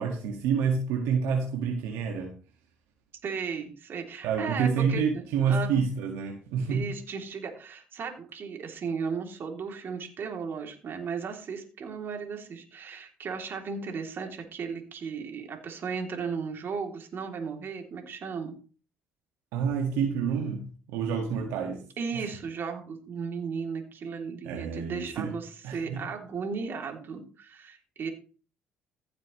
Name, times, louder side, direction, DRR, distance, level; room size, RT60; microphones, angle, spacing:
voice 1, 0.0-2.3 4.2-6.8 19.5-21.8 22.1-22.3 24.4-25.3 25.6-26.0, right 6 dB, 85° right, 2 dB, 1.8 m, -28 dB
voice 2, 3.2-5.8 6.7-18.6 22.0-28.1, right 5 dB, 55° right, 3 dB, 3.1 m, -35 dB
16.0 x 7.3 x 3.2 m, 0.37 s
supercardioid pair, 70°, 4 cm